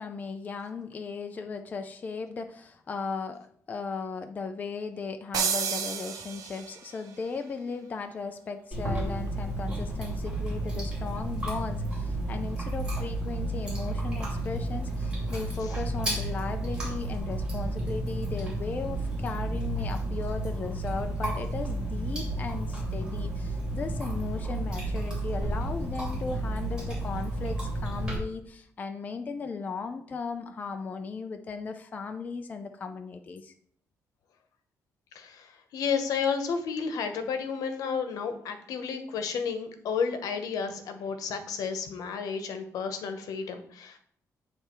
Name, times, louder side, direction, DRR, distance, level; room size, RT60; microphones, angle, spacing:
voice 1, 0.0-33.5, left 4 dB, 30° left, 6 dB, 0.4 m, -37 dB
sound 1, 5.3-7.0, right 7 dB, 70° right, 0.8 m, -31 dB
Chewing mastication, 8.7-28.2, right 1 dB, 10° right, 3.2 m, -32 dB
voice 2, 35.1-44.0, left 6 dB, 80° left, 8 dB, 0.9 m, -32 dB
9.1 x 3.3 x 4.4 m, 0.63 s
cardioid pair, 175°, 6 cm